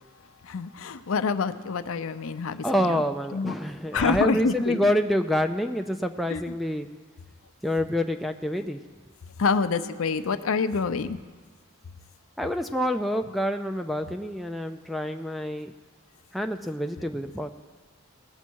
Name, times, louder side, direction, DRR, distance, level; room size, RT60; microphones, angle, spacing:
voice 1, 0.5-2.6 3.3-3.5 3.9-4.8 6.3-6.4 9.4-11.2, left 4 dB, 70° left, 11 dB, 0.5 m, -26 dB
voice 2, 2.6-6.9 7.6-8.8 12.4-15.7 16.3-17.5, equal, ahead, 4 dB, 0.3 m, -27 dB
20.0 x 7.2 x 4.5 m, 1.5 s
head